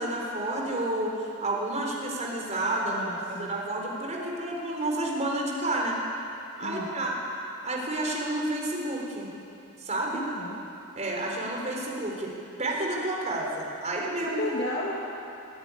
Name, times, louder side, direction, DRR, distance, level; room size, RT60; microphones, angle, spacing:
voice 1, 0.0-3.1 3.4-6.0 6.6-7.1 7.6-9.3 9.8-10.2 10.9-12.3 12.6-14.4, right 1 dB, 30° right, -1 dB, 4.1 m, -30 dB
voice 2, 2.9-3.6 6.6-6.9 10.1-10.6 14.2-15.0, left 1 dB, 45° left, -4 dB, 2.2 m, -33 dB
22.5 x 14.0 x 9.8 m, 2.7 s
head